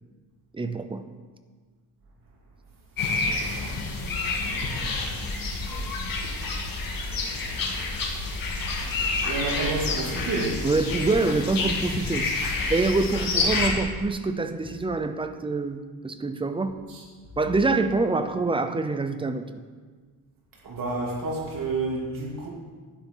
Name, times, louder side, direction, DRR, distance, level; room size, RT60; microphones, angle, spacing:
voice 1, 0.5-1.1 10.6-12.3 12.7-16.8 17.4-19.5, right 3 dB, 15° right, 9 dB, 0.6 m, -25 dB
sound 1, 3.0-13.7, left 3 dB, 55° left, 2.0 m, -28 dB
voice 2, 9.2-10.6 12.2-12.6 16.9-17.0 20.6-22.5, right 3 dB, 55° right, -3 dB, 2.9 m, -30 dB
11.5 x 9.5 x 5.5 m, 1.5 s
wide cardioid pair, 165°, 39 cm